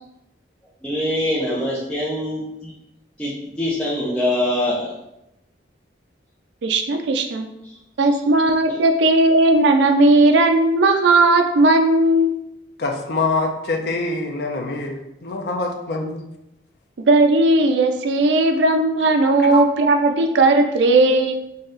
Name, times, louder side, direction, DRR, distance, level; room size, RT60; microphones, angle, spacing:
voice 1, 0.8-2.7 3.2-4.9 8.7-8.8, left 1 dB, 5° left, -9 dB, 0.6 m, -24 dB
voice 2, 6.6-7.5 8.0-12.3 17.1-21.4, right 2 dB, 75° right, 5 dB, 0.5 m, -16 dB
voice 3, 12.8-16.2 19.4-19.6, left 3 dB, 60° left, 2 dB, 0.5 m, -25 dB
4.1 x 2.5 x 3.7 m, 0.86 s
head